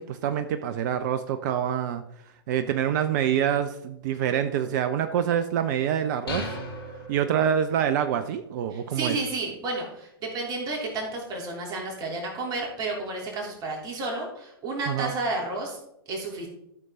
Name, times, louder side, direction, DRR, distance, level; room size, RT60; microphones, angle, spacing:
voice 1, 0.0-2.0 2.5-6.5 7.1-9.2 14.9-15.1, right 9 dB, 50° right, 9 dB, 0.7 m, -26 dB
sound 1, 6.3-7.9, left 1 dB, 75° left, 3.2 m, -36 dB
voice 2, 8.7-15.8 16.1-16.5, right 2 dB, 30° right, -1 dB, 3.3 m, -31 dB
13.5 x 6.9 x 3.7 m, 0.79 s
figure-of-eight pair, 105°, 13 cm